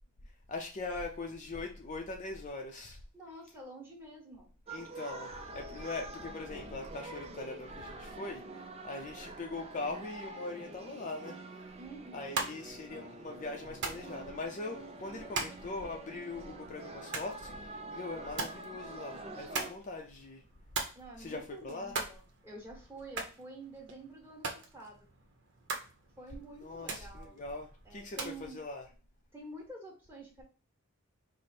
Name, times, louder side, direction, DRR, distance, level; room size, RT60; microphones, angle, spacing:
voice 1, 0.5-3.0 4.7-11.4 12.1-17.6 17.9-20.4 21.2-22.0 26.6-28.8, left 3 dB, 35° left, 0.5 m, -41 dB
voice 2, 3.1-4.5 11.8-12.4 20.9-25.1 26.2-27.4 27.8-28.6 29.3-30.4, right 2 dB, 10° right, 1.5 m, -49 dB
sound 1, 4.7-19.7, right 2 dB, 30° right, 0.5 m, -46 dB
sound 2, 12.1-28.4, right 3 dB, 60° right, 0.9 m, -43 dB
4.8 x 2.1 x 4.2 m
head